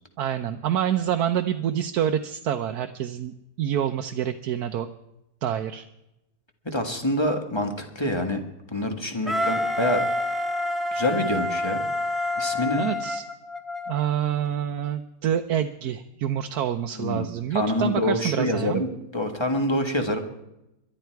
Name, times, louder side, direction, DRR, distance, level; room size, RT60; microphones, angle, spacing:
voice 1, 0.2-4.9 5.4-5.9 12.8-13.2 13.9-18.8, right 10 dB, 80° right, 6 dB, 1.2 m, -27 dB
voice 2, 6.7-8.4 8.7-10.0 10.9-11.8 12.4-12.9 17.0-20.2, left 1 dB, 15° left, 5 dB, 1.7 m, -26 dB
Wind instrument woodwind instrument, 9.3-14.0, left 1 dB, ahead, 1.0 m, -27 dB
22.0 x 11.5 x 4.6 m, 0.89 s
omnidirectional pair, 1.6 m